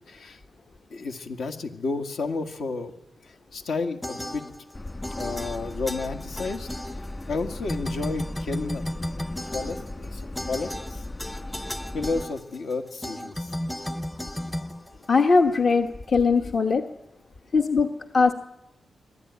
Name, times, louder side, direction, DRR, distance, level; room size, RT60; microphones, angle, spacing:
voice 1, 0.1-0.4 0.9-2.9 3.2-4.4 5.1-6.7 7.3-8.9 9.5-11.0 11.9-13.6, left 3 dB, 75° left, 5 dB, 2.1 m, -31 dB
sound 1, 4.0-4.8 5.0-7.4 7.7-15.5, left 1 dB, 10° left, 0.8 m, -34 dB
Subway metro underground, 4.7-12.2, left 1 dB, 25° left, 1.9 m, -38 dB
voice 2, 15.1-16.8 17.5-18.3, left 4 dB, 50° left, 5 dB, 1.2 m, -20 dB
24.5 x 16.0 x 9.7 m, 0.88 s
wide cardioid pair, 115°, 0 cm